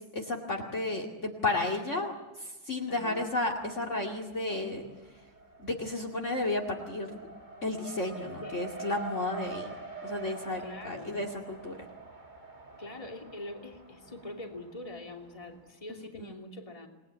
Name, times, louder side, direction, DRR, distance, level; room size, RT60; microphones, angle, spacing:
voice 1, 0.1-2.1 2.7-4.8 5.6-7.3 7.6-9.8 10.0-11.8 16.0-16.3, left 2 dB, 35° left, 4 dB, 2.7 m, -32 dB
voice 2, 2.9-3.2 8.4-8.6 10.6-11.2 12.8-16.9, left 2 dB, 15° left, 2 dB, 2.9 m, -43 dB
Race car auto racing, 3.2-3.9 4.3-15.6, right 2 dB, 25° right, 2.2 m, -46 dB
28.5 x 20.5 x 10.0 m, 1.1 s
omnidirectional pair, 2.2 m